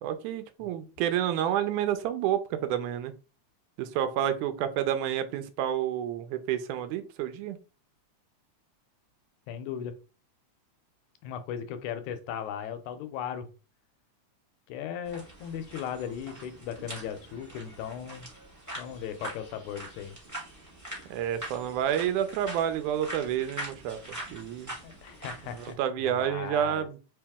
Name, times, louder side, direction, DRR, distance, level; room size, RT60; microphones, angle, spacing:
voice 1, 0.0-3.1 3.8-7.6 21.1-24.7 25.4-27.0, right 10 dB, 85° right, 10 dB, 2.0 m, -29 dB
voice 2, 9.5-10.0 11.2-13.5 14.7-18.3 18.8-20.2 24.8-26.9, left 8 dB, 80° left, 9 dB, 1.9 m, -37 dB
sound 1, 15.0-25.7, right 1 dB, 15° right, 0.6 m, -43 dB
4.6 x 2.9 x 3.5 m, 0.33 s
omnidirectional pair, 3.5 m